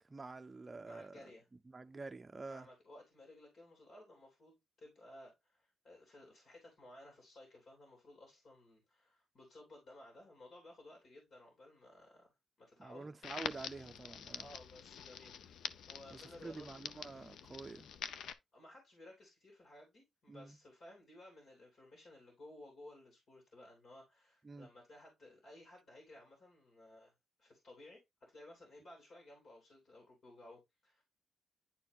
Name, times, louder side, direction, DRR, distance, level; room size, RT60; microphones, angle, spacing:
voice 1, 0.0-1.2 1.7-2.7 12.8-14.5 16.1-17.9 20.3-20.6 24.4-24.7, right 3 dB, 25° right, 0.6 m, -48 dB
voice 2, 0.8-1.4 2.5-13.3 13.6-13.7 14.3-16.7 18.5-27.1 27.4-31.0, left 1 dB, 55° left, 3.1 m, -57 dB
Crackle, 13.2-18.3, left 8 dB, 85° left, 0.5 m, -46 dB
10.5 x 4.4 x 2.4 m
wide cardioid pair, 135°, 0 cm